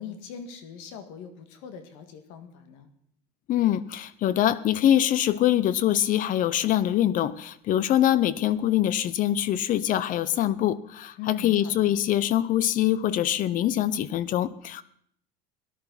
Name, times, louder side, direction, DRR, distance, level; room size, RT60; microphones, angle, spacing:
voice 1, 0.0-2.9 11.2-12.0, left 8 dB, 70° left, 8 dB, 1.9 m, -41 dB
voice 2, 3.5-14.8, left 12 dB, 40° left, 17 dB, 0.6 m, -24 dB
18.0 x 11.0 x 4.0 m, 0.66 s
cardioid pair, 140°, 20 cm